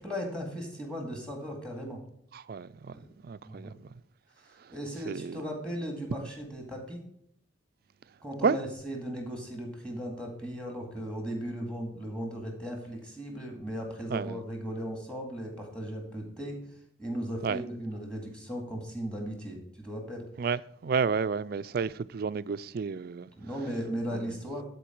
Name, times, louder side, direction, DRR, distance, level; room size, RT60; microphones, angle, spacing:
voice 1, 0.0-2.0 2.9-3.1 3.5-3.7 4.4-7.0 8.2-16.6 17.0-20.3 23.4-24.6, equal, 5° left, 2.1 m, -37 dB
voice 2, 2.3-3.9 4.6-4.7 5.1-5.4 6.2-6.3 8.4-8.6 14.1-14.4 17.4-17.6 20.4-23.3 24.1-24.4, right 5 dB, 50° right, 0.3 m, -31 dB
12.0 x 4.6 x 4.5 m
head